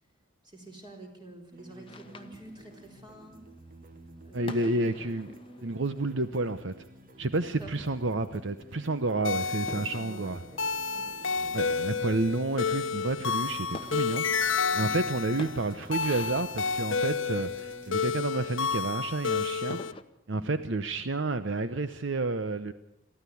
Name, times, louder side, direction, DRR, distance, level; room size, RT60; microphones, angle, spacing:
voice 1, 0.4-3.4 4.2-4.7 7.4-7.7 9.7-10.6 10.9-11.7 14.7-15.0 20.3-20.5, right 1 dB, 20° right, 2 dB, 4.2 m, -48 dB
sound 1, 1.5-18.0, right 1 dB, 40° right, 1.2 m, -52 dB
sound 2, 1.9-20.0, left 2 dB, 25° left, 1.1 m, -50 dB
voice 2, 4.3-6.7 7.2-10.4 11.5-14.2 14.7-19.8 20.3-22.7, right 2 dB, 60° right, 11 dB, 0.8 m, -30 dB
sound 3, 9.2-19.9, left 5 dB, 60° left, 0.9 m, -31 dB
22.5 x 14.5 x 8.5 m, 0.83 s
head